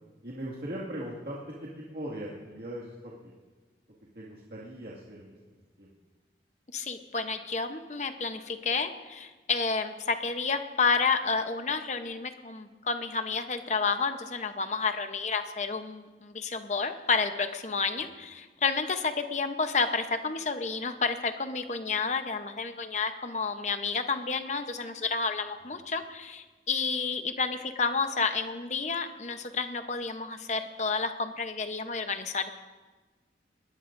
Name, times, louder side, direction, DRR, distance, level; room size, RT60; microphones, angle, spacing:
voice 1, 0.2-3.3 4.1-5.9 18.0-18.1 25.8-25.9, right 1 dB, 60° right, -6 dB, 2.2 m, -40 dB
voice 2, 6.7-32.5, left 4 dB, 40° left, 7 dB, 0.9 m, -30 dB
21.5 x 18.5 x 2.6 m, 1.3 s
head